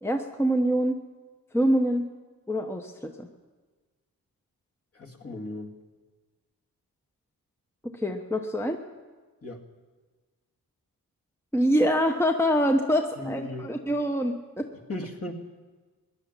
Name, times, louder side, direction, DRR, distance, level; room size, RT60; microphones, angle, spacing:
voice 1, 0.0-1.0 1.5-2.0 2.5-3.3 7.9-8.8 11.5-14.7, equal, 5° left, 4 dB, 1.0 m, -25 dB
voice 2, 4.9-5.8 9.4-9.6 13.2-13.7 14.9-15.3, left 1 dB, 40° left, 0 dB, 2.2 m, -36 dB
16.5 x 10.5 x 7.3 m, 1.4 s
cardioid pair, 60°, 36 cm